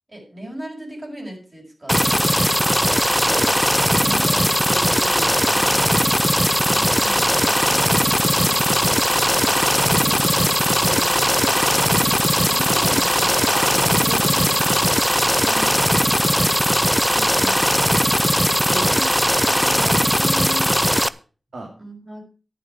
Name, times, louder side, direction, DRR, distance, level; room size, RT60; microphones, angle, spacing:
voice 1, 0.1-2.4 4.0-5.0 12.4-13.5 14.6-14.7 15.4-16.0 17.1-17.7 18.7-19.0 19.5-20.7 21.8-22.2, equal, 30° right, -2 dB, 6.1 m, -36 dB
sound 1, 1.9-21.1, equal, ahead, 0.5 m, -18 dB
voice 2, 2.6-3.6 3.9-6.2 6.7-10.5 10.8-12.2 13.5-14.9 16.3-16.5 18.6-19.0 21.5-21.7, right 2 dB, 80° right, 0 dB, 3.4 m, -36 dB
11.0 x 11.0 x 4.8 m, 0.36 s
wide cardioid pair, 85°, 0 cm